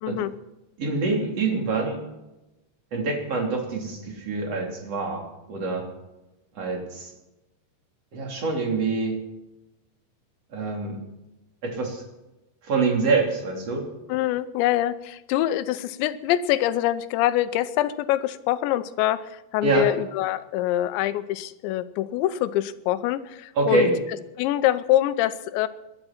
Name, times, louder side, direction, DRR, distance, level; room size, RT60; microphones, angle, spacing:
voice 1, 0.0-0.3 14.1-23.9 24.4-25.7, left 13 dB, 85° left, 13 dB, 3.0 m, -24 dB
voice 2, 0.8-2.0 2.9-5.2 5.5-5.9 6.6-7.1 8.1-9.2 10.5-11.0 11.6-12.0 12.6-13.8 19.6-19.9 23.6-23.9, right 3 dB, 35° right, 1 dB, 3.6 m, -25 dB
19.0 x 12.0 x 5.9 m, 0.99 s
omnidirectional pair, 5.3 m